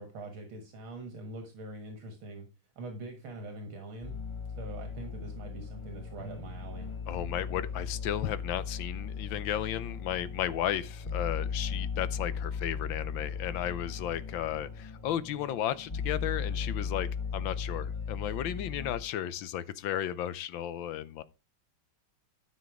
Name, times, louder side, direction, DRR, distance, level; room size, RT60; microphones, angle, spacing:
voice 1, 0.0-2.5 2.8-4.2 4.6-6.9, right 2 dB, 75° right, 2.4 m, -43 dB
sound 1, 4.0-19.0, left 6 dB, 25° left, 0.6 m, -37 dB
voice 2, 7.1-21.2, left 11 dB, 75° left, 1.4 m, -34 dB
12.5 x 6.3 x 4.8 m
omnidirectional pair, 2.3 m